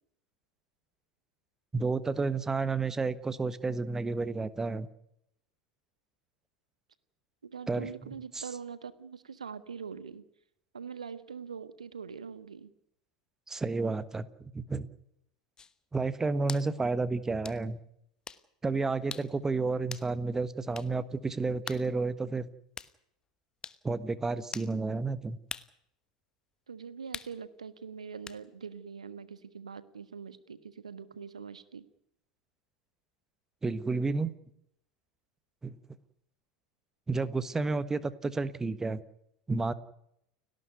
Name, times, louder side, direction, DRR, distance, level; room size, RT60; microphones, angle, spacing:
voice 1, 1.7-4.9 7.7-7.9 8.3-8.4 13.5-14.9 15.9-17.8 18.6-22.5 23.8-25.4 33.6-34.3 35.6-35.8 37.1-39.0 39.5-39.7, right 3 dB, 15° right, 15 dB, 1.3 m, -31 dB
voice 2, 7.4-10.2 10.7-12.7 26.7-31.8, right 6 dB, 75° right, 14 dB, 1.4 m, -43 dB
sound 1, 15.6-15.7 16.5-16.7 17.4-17.6 18.3-18.4 19.1-19.3 19.9-20.1 20.7-20.9 21.7-21.9 22.8-22.9 23.6-23.8 24.5-24.7 25.5-25.7 27.1-27.4 28.3-28.4, left 6 dB, 20° left, 1.1 m, -41 dB
30.0 x 12.0 x 9.4 m, 0.77 s
figure-of-eight pair, 80°, 4 cm